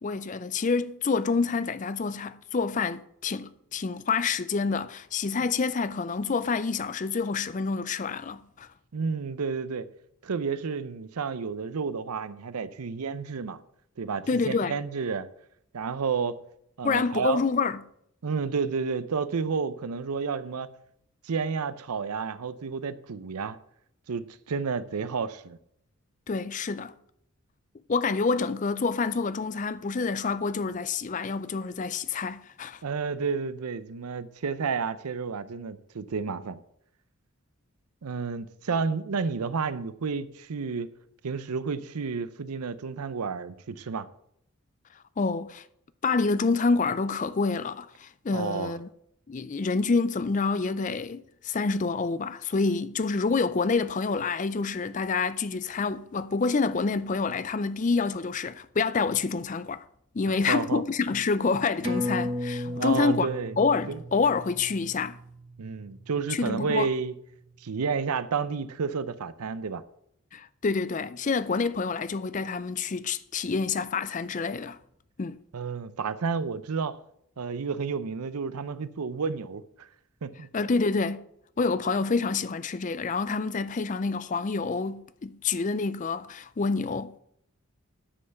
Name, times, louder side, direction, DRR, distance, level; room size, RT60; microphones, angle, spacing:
voice 1, 0.0-8.7 14.3-14.8 16.8-17.8 26.3-26.9 27.9-32.8 45.2-45.6 46.0-48.9 49.3-59.8 60.1-63.3 63.6-65.2 66.3-66.9 70.3-74.8 75.2-75.4 80.5-81.2 81.6-87.2, left 4 dB, 35° left, 0.4 m, -27 dB
voice 2, 8.9-9.9 10.2-13.6 14.0-15.3 15.7-16.4 16.8-17.4 18.2-20.7 21.2-23.6 24.1-25.6 32.8-36.6 38.0-40.9 41.2-44.1 48.3-48.7 60.5-60.8 62.7-63.6 63.9-64.0 65.6-67.1 67.6-69.8 75.5-77.0 77.4-79.9 80.2-80.5, right 5 dB, 90° right, 0.6 m, -31 dB
sound 1, 61.8-66.8 67.1-67.2, left 1 dB, 25° right, 1.1 m, -35 dB
9.7 x 5.5 x 6.9 m
head